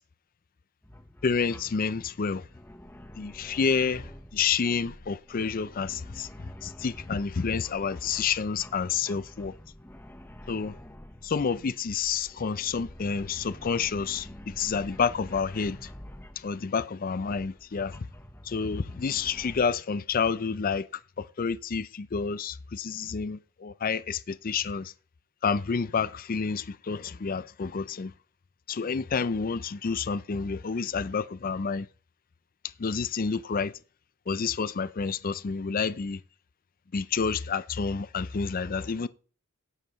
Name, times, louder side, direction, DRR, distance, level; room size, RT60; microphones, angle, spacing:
sound 1, 0.8-16.6 17.2-19.7, left 1 dB, 10° left, 0.9 m, -48 dB
voice 1, 1.2-2.4 3.2-6.3 6.6-9.5 10.5-10.7 11.2-15.9 16.4-18.1 18.5-20.8 21.4-24.9 25.4-28.1 28.7-31.9 32.8-33.7 34.3-36.2 36.9-39.1, left 5 dB, 40° left, 0.5 m, -29 dB
17.5 x 7.5 x 3.1 m
head